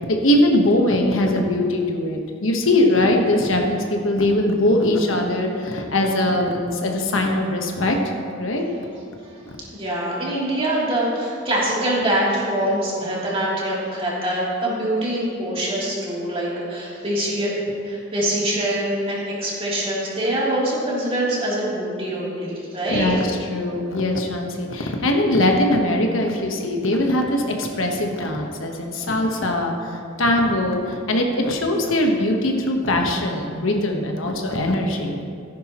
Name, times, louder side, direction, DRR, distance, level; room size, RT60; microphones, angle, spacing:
voice 1, 0.1-8.1 8.4-8.6 22.9-29.9 30.2-35.2, left 1 dB, 80° left, 2 dB, 1.3 m, -21 dB
voice 2, 9.7-17.5 17.8-23.1, right 1 dB, 30° right, -7 dB, 3.1 m, -24 dB
14.5 x 10.5 x 3.0 m, 2.4 s
head